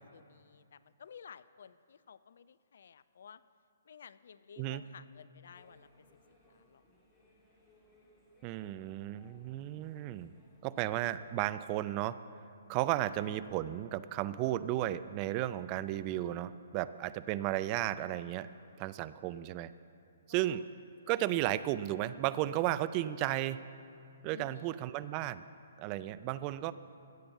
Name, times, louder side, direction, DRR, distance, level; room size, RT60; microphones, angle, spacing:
voice 1, 0.0-3.4 3.9-6.1 6.5-6.8 13.1-13.3 20.3-20.6 24.3-24.8, left 7 dB, 65° left, 17 dB, 0.4 m, -54 dB
sound 1, 5.4-11.4, left 1 dB, 15° left, 2.9 m, -66 dB
voice 2, 8.4-10.3 10.6-12.2 12.7-18.5 18.8-19.7 20.3-20.6 21.1-23.6 24.2-25.4 25.8-26.7, right 14 dB, 35° right, 15 dB, 0.4 m, -34 dB
16.0 x 6.9 x 6.9 m, 2.4 s
figure-of-eight pair, 130°, 0 cm